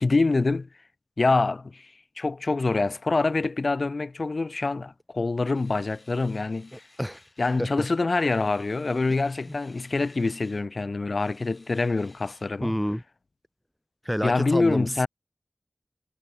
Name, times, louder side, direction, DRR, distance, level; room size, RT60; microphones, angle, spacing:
voice 1, 0.0-0.7 1.2-6.8 7.4-12.8 14.2-15.1, left 3 dB, 65° left, 0.8 m, -25 dB
sound 1, 5.5-7.8 8.1-10.7 11.2-12.5, left 2 dB, 50° left, 6.7 m, -57 dB
voice 2, 6.7-7.2 7.6-7.9 12.6-13.0 14.0-15.1, equal, 5° left, 0.6 m, -28 dB
wide cardioid pair, 55°, 0 cm